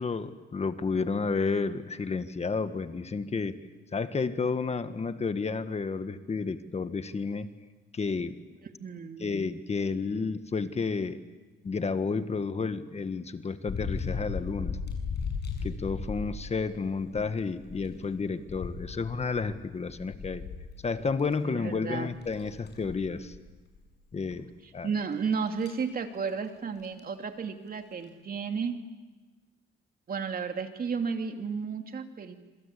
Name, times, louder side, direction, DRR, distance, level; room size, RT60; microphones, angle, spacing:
voice 1, 0.0-3.6 3.9-7.5 7.9-8.4 9.2-11.2 11.6-14.8 15.6-20.4 20.8-23.3 24.1-24.5 24.7-24.9, left 4 dB, 35° left, 10 dB, 1.5 m, -31 dB
voice 2, 8.6-9.3 21.4-22.1 24.8-28.8 30.1-32.3, right 5 dB, 50° right, 5 dB, 2.8 m, -33 dB
sound 1, 13.7-17.2 17.6-21.3 21.6-21.7 22.1-23.4 23.7-23.9 24.3-24.4 25.3-25.8 26.8-27.0 27.8-28.0, left 5 dB, 60° left, 7.5 m, -36 dB
26.5 x 25.5 x 8.4 m, 1.2 s
cardioid pair, 90°, 20 cm